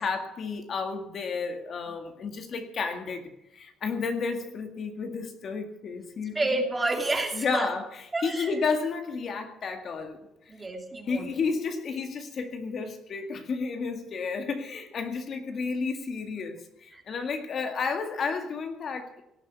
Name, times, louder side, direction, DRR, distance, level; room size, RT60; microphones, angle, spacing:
voice 1, 0.0-6.4 7.3-10.2 11.1-19.2, left 5 dB, 45° left, 5 dB, 2.0 m, -32 dB
voice 2, 6.3-7.7 8.1-8.6 10.5-11.3 16.9-17.0, right 2 dB, 20° right, 3 dB, 2.8 m, -29 dB
17.5 x 7.5 x 9.5 m, 0.85 s
cardioid pair, 110°, 0 cm